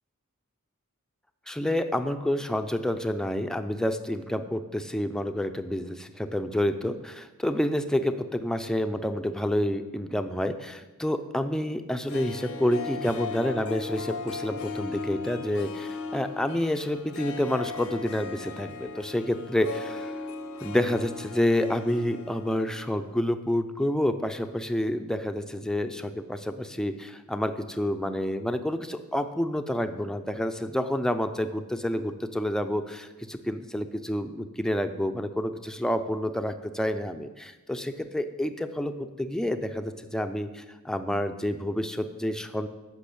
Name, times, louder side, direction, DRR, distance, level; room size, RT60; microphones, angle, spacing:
voice 1, 1.5-20.2 20.6-42.7, left 1 dB, 5° left, 8 dB, 0.6 m, -29 dB
Harp, 11.9-22.9 23.2-23.3, left 4 dB, 75° left, 0.9 m, -37 dB
11.5 x 6.6 x 8.5 m, 1.1 s
head